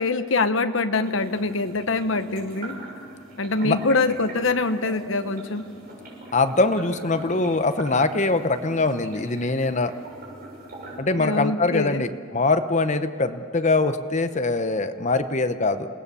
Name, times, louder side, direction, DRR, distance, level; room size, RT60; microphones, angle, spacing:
voice 1, 0.0-2.8 3.4-5.6 11.1-12.1, left 3 dB, 65° left, 10 dB, 1.0 m, -24 dB
sound 1, 1.0-11.0, right 1 dB, 45° right, 6.7 m, -42 dB
voice 2, 6.3-9.9 11.0-15.9, left 3 dB, 35° left, 10 dB, 0.8 m, -23 dB
28.0 x 18.5 x 6.9 m, 2.5 s
head